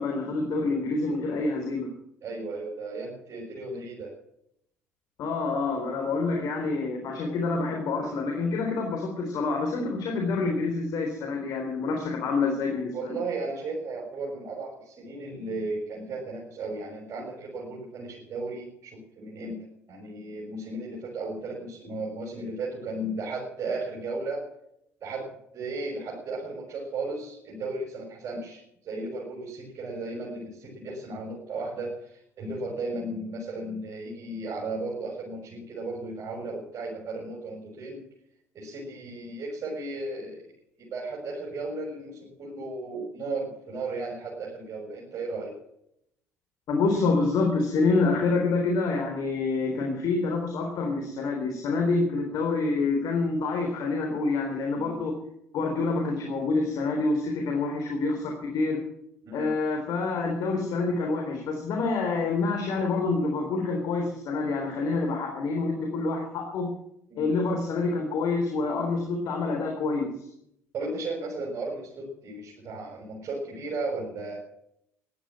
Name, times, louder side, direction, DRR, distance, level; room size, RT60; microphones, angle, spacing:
voice 1, 0.0-1.9 5.2-13.2 46.7-55.1 55.5-58.8 59.3-66.7 67.2-70.1, left 3 dB, 60° left, 1 dB, 3.8 m, -27 dB
voice 2, 2.2-4.1 12.9-24.5 25.0-25.3 25.5-38.0 38.5-40.4 40.8-45.5 54.7-55.0 59.2-59.5 67.1-67.3 70.7-74.4, right 2 dB, 45° right, -4 dB, 6.4 m, -35 dB
15.5 x 11.0 x 7.6 m, 0.75 s
hypercardioid pair, 55°, 7 cm